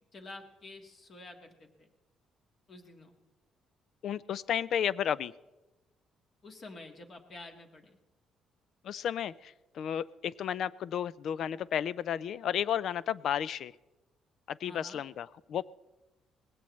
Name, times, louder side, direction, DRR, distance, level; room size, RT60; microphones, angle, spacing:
voice 1, 0.1-1.9 2.7-3.1 6.4-8.0 14.6-15.0, left 2 dB, 40° left, 4 dB, 1.7 m, -49 dB
voice 2, 4.0-5.3 8.8-13.7 14.5-15.6, left 9 dB, 60° left, 19 dB, 0.4 m, -33 dB
20.0 x 16.0 x 3.1 m, 1.1 s
cardioid pair, 130°, 0 cm